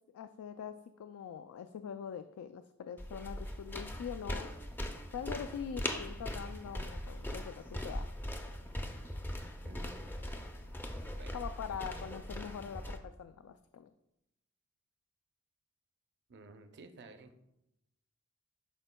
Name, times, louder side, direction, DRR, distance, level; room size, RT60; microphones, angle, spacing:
voice 1, 0.1-0.7 1.0-4.5 5.1-8.1 11.3-13.9, left 7 dB, 85° left, 10 dB, 0.3 m, -43 dB
sound 1, 3.0-13.0, left 1 dB, 10° left, 0.4 m, -40 dB
voice 2, 9.6-10.0 11.2-11.4 16.3-17.3, right 3 dB, 55° right, 7 dB, 0.6 m, -53 dB
10.5 x 4.5 x 2.2 m, 0.86 s
head